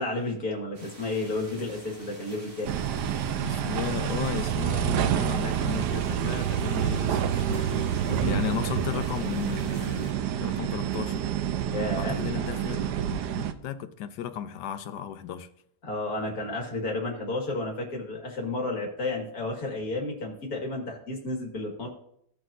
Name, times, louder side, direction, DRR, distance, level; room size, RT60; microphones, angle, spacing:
voice 1, 0.0-2.7 8.1-8.3 11.7-12.5 15.8-21.9, left 2 dB, 60° left, 2.1 m, -32 dB
sound 1, 0.7-10.1, right 2 dB, 45° right, 2.0 m, -48 dB
sound 2, 2.6-13.5, right 9 dB, 80° right, 1.2 m, -28 dB
voice 2, 3.4-11.3 11.9-15.5, left 10 dB, 80° left, 1.3 m, -35 dB
16.0 x 6.1 x 2.5 m
omnidirectional pair, 1.8 m